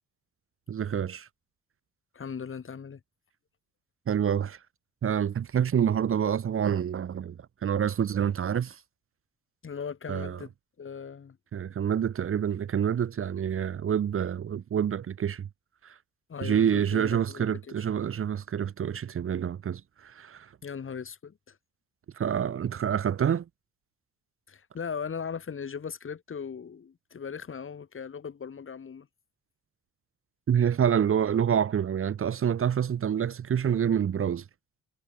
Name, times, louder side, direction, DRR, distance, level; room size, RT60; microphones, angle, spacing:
voice 1, 0.7-1.3 4.1-4.6 5.0-8.8 10.1-10.4 11.5-15.5 15.8-15.9 16.4-20.5 22.2-23.4 30.5-34.4, right 8 dB, 45° right, 1.1 m, -27 dB
voice 2, 2.1-3.0 9.6-10.5 10.8-11.4 16.3-17.9 20.6-21.6 24.5-29.1, left 6 dB, 45° left, 5.8 m, -38 dB
cardioid pair, 90°, 30 cm